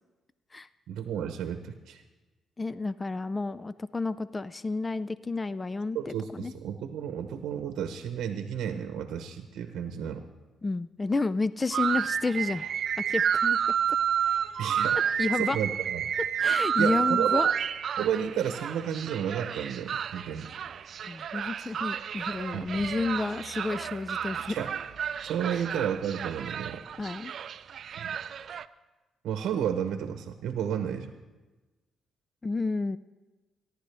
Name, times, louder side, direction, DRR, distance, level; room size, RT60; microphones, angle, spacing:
voice 1, 0.9-2.0 5.9-10.3 14.6-15.0 15.4-16.0 16.8-17.5 18.0-20.5 22.5-22.8 24.5-24.7 25.2-26.8 27.9-28.1 29.2-31.1, right 9 dB, 80° right, 7 dB, 0.8 m, -32 dB
voice 2, 2.6-6.5 10.6-12.7 13.0-13.6 13.9-14.0 15.2-15.6 16.4-17.5 21.0-24.5 25.5-25.6 27.0-27.3 32.4-33.0, left 3 dB, 20° left, 16 dB, 0.3 m, -31 dB
sound 1, 11.7-28.6, right 8 dB, 60° right, 0.4 m, -30 dB
28.0 x 11.5 x 3.4 m, 1.2 s
cardioid pair, 90°, 0 cm